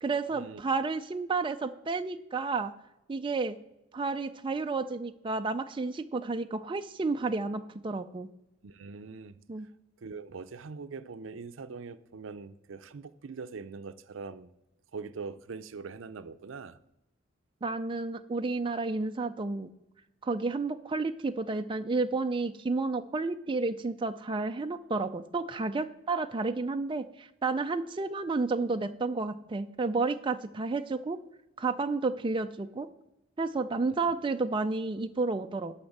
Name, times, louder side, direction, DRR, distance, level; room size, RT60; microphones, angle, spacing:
voice 1, 0.0-2.7 3.1-3.6 3.9-8.3 9.5-9.7 17.6-19.7 20.2-31.2 31.6-32.9 33.4-35.7, right 3 dB, 25° right, 8 dB, 0.4 m, -31 dB
voice 2, 8.6-9.4 10.0-14.5 14.9-16.8, right 4 dB, 85° right, 13 dB, 0.5 m, -42 dB
11.5 x 4.3 x 7.2 m, 0.90 s
head